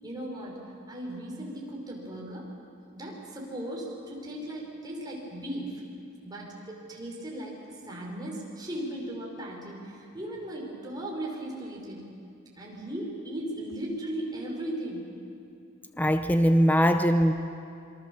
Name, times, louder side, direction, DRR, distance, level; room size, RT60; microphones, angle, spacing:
voice 1, 0.0-2.5 2.9-5.8 6.2-12.1 12.6-15.1, right 1 dB, 20° right, -3 dB, 5.2 m, -37 dB
voice 2, 16.0-17.3, equal, 10° left, 8 dB, 0.6 m, -21 dB
27.0 x 24.0 x 7.1 m, 2.5 s
head